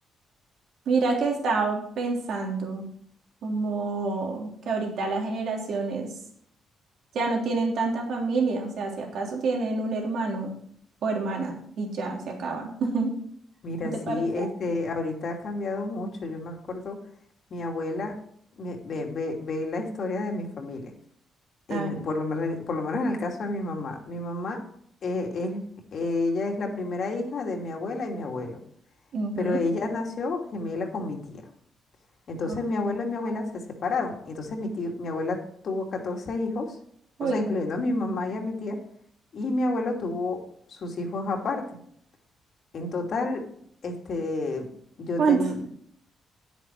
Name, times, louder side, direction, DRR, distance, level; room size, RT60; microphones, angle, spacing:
voice 1, 0.8-2.8 3.4-6.1 7.1-10.5 11.0-13.1 14.1-14.5 21.7-22.0 29.1-29.6 32.4-32.6 37.2-37.4 45.2-45.4, right 4 dB, 70° right, 0 dB, 3.4 m, -27 dB
voice 2, 13.6-17.0 17.5-18.1 18.6-20.9 21.7-24.6 25.0-25.6 25.9-28.6 29.4-31.2 32.3-33.5 33.8-35.4 35.6-36.8 37.2-38.8 39.3-40.4 40.7-41.6 42.7-43.4 43.8-44.7 45.0-45.7, left 2 dB, 55° left, 2 dB, 2.7 m, -30 dB
9.8 x 9.1 x 4.7 m, 0.64 s
cardioid pair, 90°, 0 cm